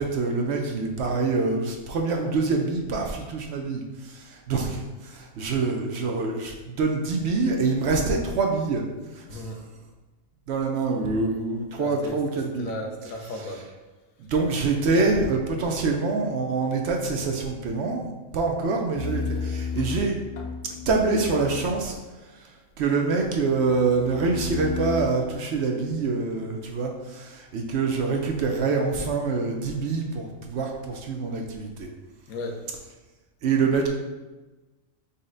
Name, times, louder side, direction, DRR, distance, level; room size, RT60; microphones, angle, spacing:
voice 1, 0.0-8.8 9.1-9.5 10.5-12.7 14.2-20.1 20.9-21.9 22.4-22.5 22.8-31.9 33.4-33.9, right 4 dB, 65° right, 2 dB, 0.7 m, -25 dB
voice 2, 9.2-9.6 11.8-12.2 12.6-13.6 19.7-20.0 32.3-32.6, left 2 dB, 90° left, 2 dB, 1.1 m, -35 dB
sound 1, 19.0-22.0 23.3-25.1, left 5 dB, 75° left, 0.4 m, -33 dB
5.4 x 2.1 x 3.8 m, 1.2 s
omnidirectional pair, 1.4 m